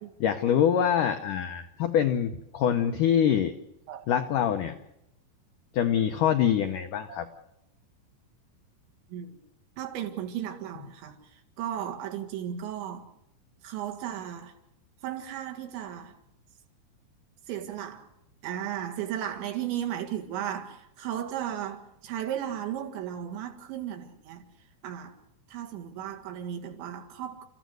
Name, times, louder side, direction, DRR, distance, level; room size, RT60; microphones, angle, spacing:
voice 1, 0.2-3.6 4.1-4.8 5.7-7.3, left 9 dB, 80° left, 1.8 m, -25 dB
voice 2, 9.8-13.1 13.6-14.6 15.0-16.2 17.5-18.1 18.4-24.5 24.8-25.2 25.5-27.5, right 10 dB, 85° right, 4.2 m, -35 dB
30.0 x 14.5 x 8.0 m
omnidirectional pair, 5.1 m